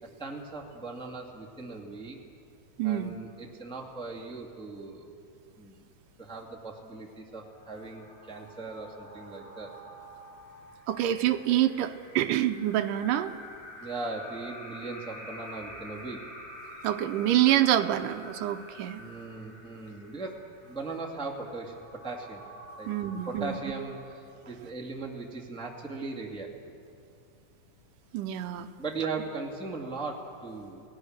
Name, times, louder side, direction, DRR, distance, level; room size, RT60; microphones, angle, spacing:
voice 1, 0.0-2.2 2.8-5.1 5.6-5.8 6.2-9.7 13.8-16.2 19.0-22.4 22.8-26.7 28.8-30.8, right 3 dB, ahead, -1 dB, 1.2 m, -39 dB
voice 2, 2.8-3.1 10.9-13.3 16.8-19.0 22.9-23.6 28.1-28.7, right 12 dB, 75° right, 8 dB, 2.2 m, -26 dB
sound 1, 7.3-24.7, equal, 30° left, 8.7 m, -48 dB
29.5 x 17.5 x 6.6 m, 2.5 s
omnidirectional pair, 4.2 m